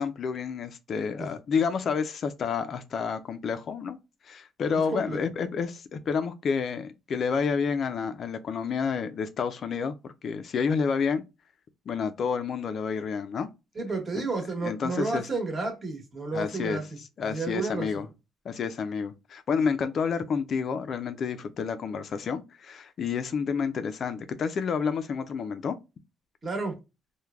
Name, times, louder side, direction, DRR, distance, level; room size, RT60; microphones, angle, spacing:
voice 1, 0.0-4.0 4.2-11.2 11.9-13.5 14.1-14.3 14.6-15.3 16.3-16.8 17.2-18.1 18.5-25.8, left 6 dB, 50° left, 0.3 m, -29 dB
voice 2, 13.7-16.8 17.2-18.0 26.4-26.7, right 3 dB, 30° right, 1.0 m, -31 dB
3.1 x 2.1 x 2.3 m
cardioid pair, 120°, 0 cm